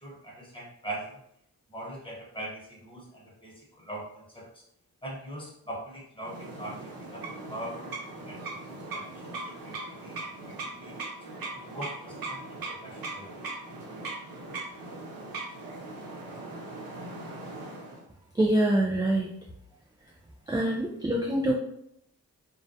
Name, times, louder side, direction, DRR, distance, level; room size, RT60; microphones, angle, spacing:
voice 1, 0.0-1.2 1.7-4.6 5.0-6.8 7.1-7.2 7.5-11.0 11.5-13.3, right 1 dB, 15° left, -3 dB, 1.1 m, -42 dB
sound 1, 6.2-18.0, right 2 dB, 60° right, 0.8 m, -39 dB
voice 2, 18.3-19.3 20.5-21.5, right 1 dB, 10° right, -1 dB, 0.3 m, -25 dB
2.3 x 2.1 x 2.6 m, 0.74 s
cardioid pair, 45°, 39 cm